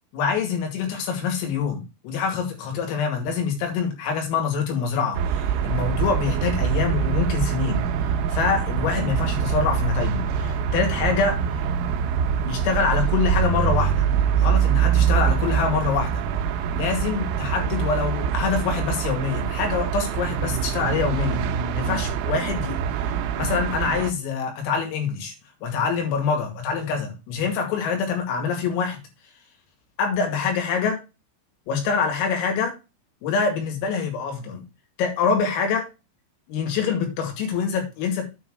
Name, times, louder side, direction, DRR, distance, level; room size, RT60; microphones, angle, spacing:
voice 1, 0.1-7.9 8.3-11.4 12.4-14.1 14.4-16.2 16.7-21.5 21.7-22.8 23.0-25.3 25.6-29.0 30.0-31.0 31.7-32.8 33.2-34.6 35.0-35.9 36.5-38.3, left 5 dB, 80° left, 3 dB, 4.9 m, -25 dB
sound 1, 5.1-24.1, right 8 dB, 85° right, 3.3 m, -24 dB
9.0 x 3.9 x 6.3 m, 0.27 s
omnidirectional pair, 6.0 m